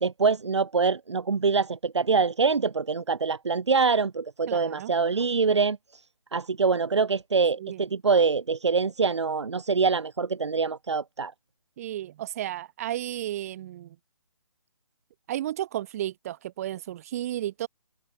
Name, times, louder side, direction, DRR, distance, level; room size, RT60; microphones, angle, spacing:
voice 1, 0.0-6.0 6.3-11.3, right 4 dB, 60° right, 1.8 m, -24 dB
voice 2, 4.5-4.9 7.6-7.8 11.8-14.0 15.3-17.7, right 13 dB, 30° right, 7.2 m, -33 dB
figure-of-eight pair, 145°, 16 cm